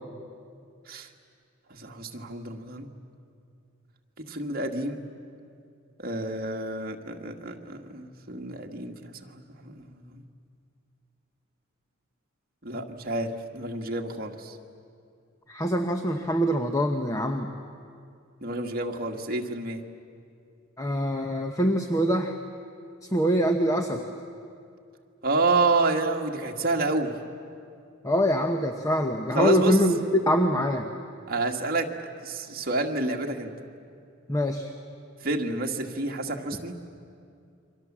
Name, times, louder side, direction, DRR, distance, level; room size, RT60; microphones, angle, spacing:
voice 1, 1.7-2.9 4.3-5.0 6.0-10.2 12.6-14.6 18.4-19.8 25.2-27.1 29.3-29.8 31.3-31.9 32.2-33.5 35.2-36.8, right 3 dB, 45° right, 2 dB, 1.8 m, -29 dB
voice 2, 15.5-17.5 20.8-22.4 23.0-24.0 28.0-30.9 34.3-34.7, equal, 15° left, 5 dB, 1.0 m, -24 dB
29.5 x 24.5 x 7.4 m, 2.4 s
head